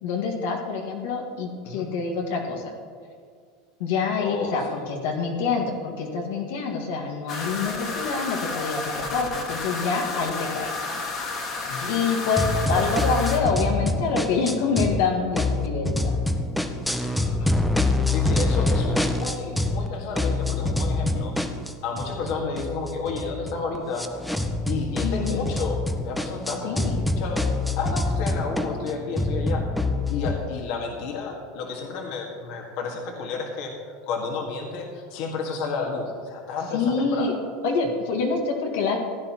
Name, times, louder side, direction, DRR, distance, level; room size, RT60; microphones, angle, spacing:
voice 1, 0.0-2.7 3.8-10.7 11.9-16.1 25.0-25.5 26.6-27.0 36.7-37.3 37.6-39.0, left 4 dB, 80° left, 0 dB, 1.7 m, -26 dB
voice 2, 4.2-4.5 11.7-11.9 12.5-12.9 17.0-17.5 18.1-21.3 21.8-24.1 24.7-27.4 27.8-29.6 30.1-33.7 34.1-37.3, left 4 dB, 60° left, 0 dB, 1.7 m, -31 dB
sound 1, 7.3-13.4, left 3 dB, 35° left, 1.8 m, -31 dB
sound 2, 12.4-15.0 15.3-19.9 20.2-30.4, left 2 dB, 5° left, 0.6 m, -26 dB
15.5 x 10.0 x 3.0 m, 2.1 s
supercardioid pair, 145°, 0 cm